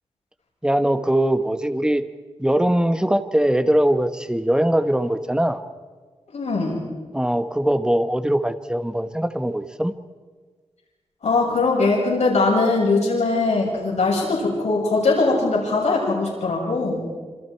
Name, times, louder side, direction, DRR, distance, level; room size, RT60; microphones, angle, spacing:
voice 1, 0.6-2.0 2.4-5.6 7.1-9.9, right 1 dB, 5° right, 9 dB, 1.4 m, -21 dB
voice 2, 6.3-6.8 11.2-17.0, left 3 dB, 90° left, -3 dB, 7.6 m, -21 dB
27.0 x 27.0 x 4.7 m, 1.4 s
wide cardioid pair, 85°, 11 cm